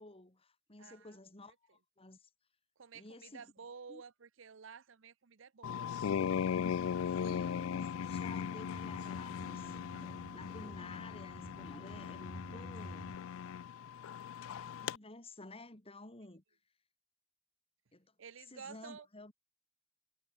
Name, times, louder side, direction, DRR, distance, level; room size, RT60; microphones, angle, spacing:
voice 1, 0.0-2.3 2.9-3.5 3.9-4.0 7.1-9.8 10.3-13.1 14.6-16.4 17.9-18.1 18.5-19.3, left 2 dB, 30° left, 2.8 m, -52 dB
voice 2, 0.8-1.2 2.8-6.1 18.2-19.1, right 6 dB, 70° right, 0.7 m, -52 dB
sound 1, 5.6-15.0, left 7 dB, 90° left, 0.4 m, -38 dB
sound 2, 8.1-13.1, right 1 dB, 15° right, 0.4 m, -51 dB
head